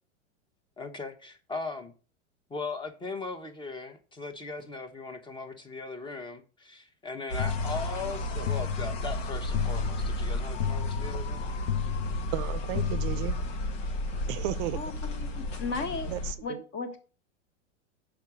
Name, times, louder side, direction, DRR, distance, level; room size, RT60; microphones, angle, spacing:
voice 1, 0.8-1.9 2.5-11.5, left 3 dB, 10° left, 1.1 m, -38 dB
sound 1, 7.3-16.3, left 1 dB, 80° left, 1.8 m, -33 dB
sound 2, 7.4-13.8, left 10 dB, 65° left, 0.6 m, -34 dB
voice 2, 12.3-13.4 14.3-14.8 16.1-16.6, right 14 dB, 45° right, 0.6 m, -34 dB
voice 3, 14.8-16.1 16.4-17.0, left 4 dB, 30° left, 1.5 m, -35 dB
6.6 x 4.9 x 6.1 m
hypercardioid pair, 125°, 38 cm